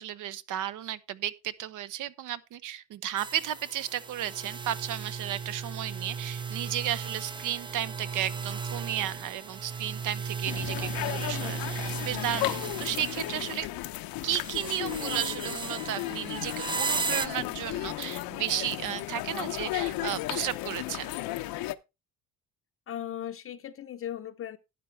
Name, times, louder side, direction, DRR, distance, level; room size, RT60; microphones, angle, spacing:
voice 1, 0.0-13.7 14.2-21.1, right 11 dB, 60° right, 0.8 m, -34 dB
sound 1, 3.2-13.9 14.2-17.3, right 5 dB, 15° right, 0.4 m, -36 dB
sound 2, 10.5-21.8, left 17 dB, 80° left, 0.7 m, -35 dB
voice 2, 22.9-24.6, left 11 dB, 40° left, 0.7 m, -38 dB
12.0 x 9.8 x 3.3 m
cardioid pair, 135°, 35 cm